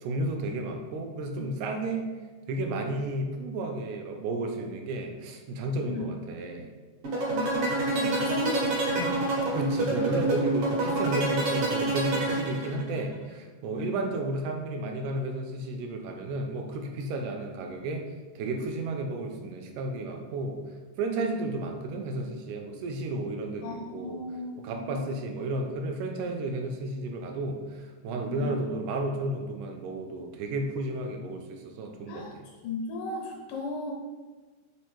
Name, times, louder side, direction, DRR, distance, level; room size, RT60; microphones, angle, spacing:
voice 1, 0.0-2.1 2.5-6.7 9.5-18.1 18.4-20.6 21.0-24.2 24.6-32.4, right 2 dB, 80° right, 3 dB, 2.0 m, -32 dB
sound 1, 7.0-13.0, right 2 dB, 60° right, 1.6 m, -27 dB
voice 2, 7.2-9.2 12.7-12.8 13.8-14.0 23.6-25.1 28.3-28.5 32.1-32.3 32.6-33.9, left 2 dB, 85° left, -1 dB, 2.2 m, -36 dB
4.9 x 3.3 x 3.0 m, 1.3 s
omnidirectional pair, 3.6 m